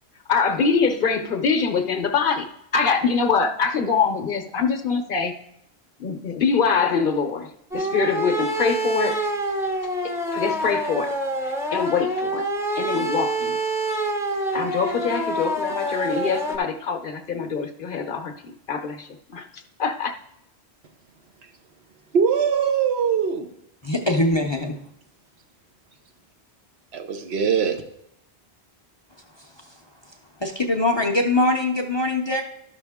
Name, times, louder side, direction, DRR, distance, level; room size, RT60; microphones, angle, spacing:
voice 1, 0.3-2.5 2.7-5.3 6.0-9.2 10.0-11.1 11.4-12.5 12.8-13.6 14.5-19.5 19.8-20.2, left 5 dB, 55° left, 0.9 m, -24 dB
sound 1, 7.7-16.6, right 1 dB, 5° right, 0.7 m, -26 dB
voice 2, 22.1-23.5 26.9-27.8, right 7 dB, 75° right, 1.1 m, -21 dB
voice 3, 23.8-24.8 30.4-32.4, left 2 dB, 30° left, 0.5 m, -22 dB
12.5 x 5.9 x 3.5 m
omnidirectional pair, 1.1 m